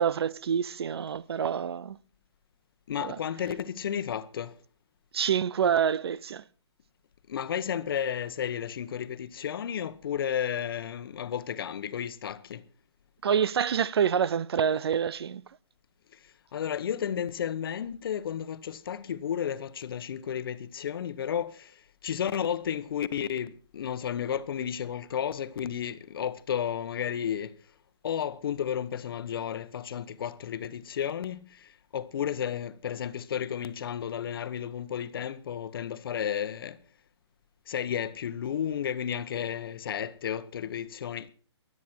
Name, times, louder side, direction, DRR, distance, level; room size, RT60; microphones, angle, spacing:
voice 1, 0.0-2.0 3.0-3.2 5.1-6.4 13.2-15.4, right 8 dB, 60° right, 0.6 m, -27 dB
voice 2, 2.9-4.6 7.3-12.6 16.1-27.5 28.0-36.8 37.7-41.3, left 9 dB, 50° left, 1.1 m, -33 dB
23.0 x 9.4 x 4.5 m
hypercardioid pair, 155°, 15 cm